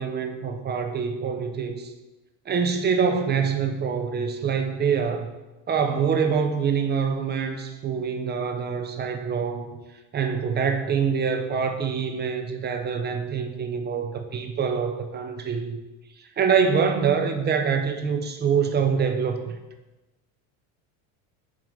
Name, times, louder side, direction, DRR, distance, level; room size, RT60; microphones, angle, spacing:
voice 1, 0.0-1.9 2.5-5.3 5.7-9.7 10.1-15.8 16.2-19.5, right 6 dB, 25° right, 6 dB, 0.6 m, -25 dB
6.1 x 5.2 x 5.3 m, 1.1 s
supercardioid pair, 135°, 41 cm